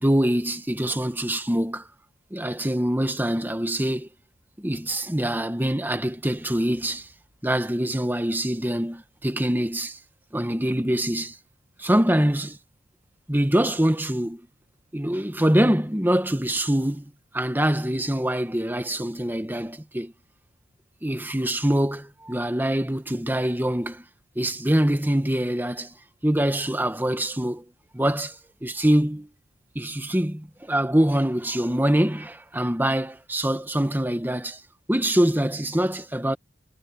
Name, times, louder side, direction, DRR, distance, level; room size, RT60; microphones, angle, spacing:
voice 1, 0.0-1.9 2.3-4.1 4.6-7.1 7.4-10.0 10.3-11.4 11.8-12.6 13.3-14.4 14.9-20.1 21.0-24.0 24.4-25.9 26.2-27.6 27.9-28.4 28.6-29.3 29.7-34.6 34.9-36.4, right 1 dB, 10° right, 1.3 m, -24 dB
head